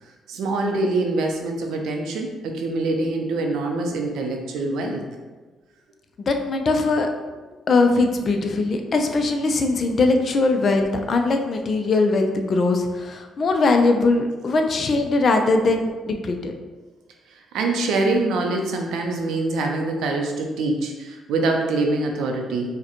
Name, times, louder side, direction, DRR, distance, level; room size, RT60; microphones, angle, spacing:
voice 1, 0.0-5.1 17.3-22.7, right 2 dB, 85° right, 2 dB, 0.5 m, -24 dB
voice 2, 6.3-7.1 7.7-16.5, left 3 dB, 50° left, 4 dB, 0.4 m, -20 dB
4.8 x 2.2 x 2.9 m, 1.3 s
cardioid pair, 90°, 0 cm